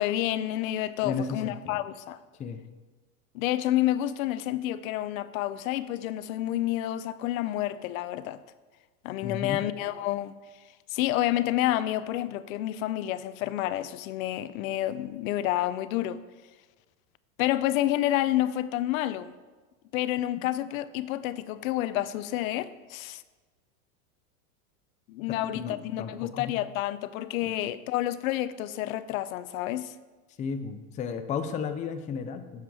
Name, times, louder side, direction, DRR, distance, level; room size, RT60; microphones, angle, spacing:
voice 1, 0.0-2.2 3.3-8.4 9.0-10.3 10.9-16.2 17.4-19.3 19.9-23.2 25.1-29.9, left 14 dB, 65° left, 0.6 m, -29 dB
voice 2, 1.0-1.8 2.4-2.6 9.2-9.6 25.3-26.5 30.4-32.6, left 6 dB, 15° left, 0.5 m, -34 dB
9.1 x 7.3 x 4.9 m
supercardioid pair, 125°, 44 cm